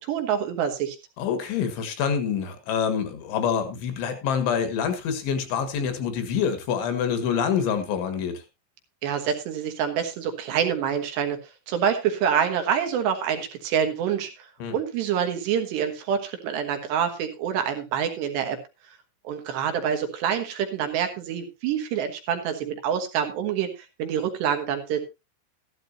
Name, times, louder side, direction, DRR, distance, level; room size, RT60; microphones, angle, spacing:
voice 1, 0.0-1.0 9.0-11.4 11.7-18.6 19.2-25.0, right 8 dB, 70° right, 6 dB, 2.9 m, -26 dB
voice 2, 1.2-8.4 14.6-14.8, left 7 dB, 70° left, 8 dB, 3.8 m, -26 dB
14.0 x 12.5 x 2.8 m, 0.25 s
omnidirectional pair, 5.9 m